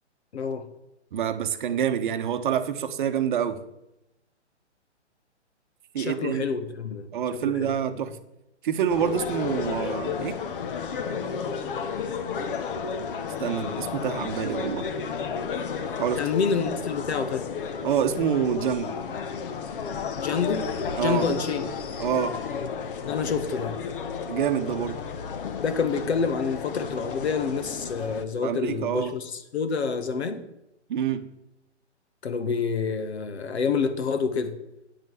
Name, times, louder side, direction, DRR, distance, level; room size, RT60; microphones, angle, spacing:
voice 1, 0.3-0.7 6.0-7.7 8.0-8.1 16.1-17.5 20.2-20.7 20.9-21.7 23.0-23.8 25.6-30.4 32.2-34.6, left 5 dB, 65° left, 1.5 m, -28 dB
voice 2, 1.1-3.6 5.9-6.4 7.1-8.2 8.6-10.4 13.4-14.9 16.0-16.3 17.8-19.0 21.0-21.3 22.0-22.4 24.3-25.0 28.4-29.2 30.9-31.3, right 8 dB, 45° right, 1.0 m, -27 dB
sound 1, 8.9-28.2, left 6 dB, 50° left, 1.1 m, -32 dB
8.9 x 5.3 x 7.9 m
hypercardioid pair, 135°, 36 cm